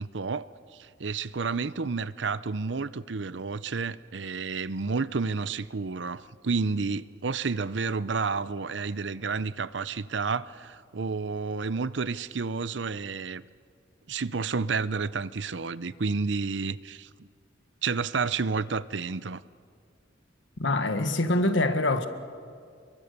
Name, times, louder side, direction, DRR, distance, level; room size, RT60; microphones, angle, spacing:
voice 1, 0.0-13.4 14.1-17.3 17.8-19.4, right 4 dB, 70° right, 0.7 m, -30 dB
voice 2, 20.6-22.1, left 2 dB, 80° left, 1.6 m, -24 dB
29.5 x 23.0 x 6.8 m
head